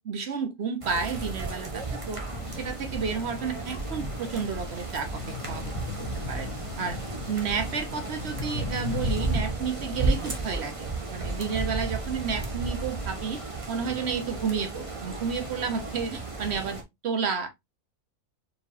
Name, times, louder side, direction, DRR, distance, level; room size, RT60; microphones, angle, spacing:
voice 1, 0.0-2.2 2.6-5.2 5.5-5.7 6.0-6.5 6.8-7.0 7.3-17.5, right 5 dB, 50° right, 1.0 m, -31 dB
sound 1, 0.8-16.8, right 3 dB, 25° right, 0.9 m, -33 dB
sound 2, 2.3-9.4, left 9 dB, 80° left, 1.2 m, -39 dB
4.5 x 3.5 x 2.6 m
omnidirectional pair, 1.6 m